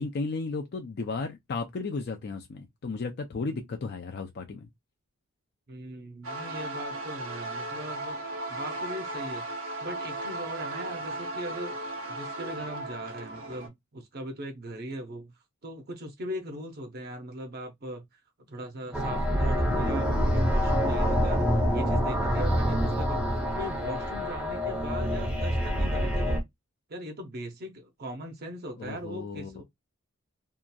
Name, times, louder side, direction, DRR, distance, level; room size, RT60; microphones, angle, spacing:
voice 1, 0.0-4.7 19.8-20.5 28.8-29.6, left 4 dB, 50° left, 0.4 m, -35 dB
voice 2, 5.7-8.2 8.5-9.5 9.8-11.8 12.1-15.3 15.6-18.2 18.5-26.4 26.9-29.6, equal, 50° right, 0.6 m, -39 dB
sound 1, 6.2-13.7, right 2 dB, 85° right, 0.8 m, -36 dB
sound 2, 18.9-26.4, equal, 5° right, 0.6 m, -26 dB
2.8 x 2.4 x 2.2 m
head